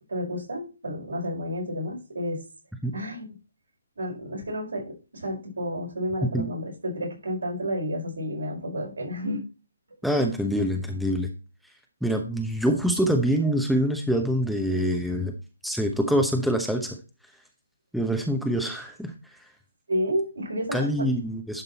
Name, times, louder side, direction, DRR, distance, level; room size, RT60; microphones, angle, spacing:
voice 1, 0.1-2.4 2.9-3.4 4.0-9.4 19.9-21.1, equal, 75° right, 0 dB, 5.0 m, -31 dB
voice 2, 10.0-11.3 12.0-15.4 15.6-17.0 17.9-19.1 20.7-21.6, equal, ahead, 3 dB, 0.9 m, -25 dB
11.0 x 5.4 x 4.2 m, 0.33 s
figure-of-eight pair, 140°, 0 cm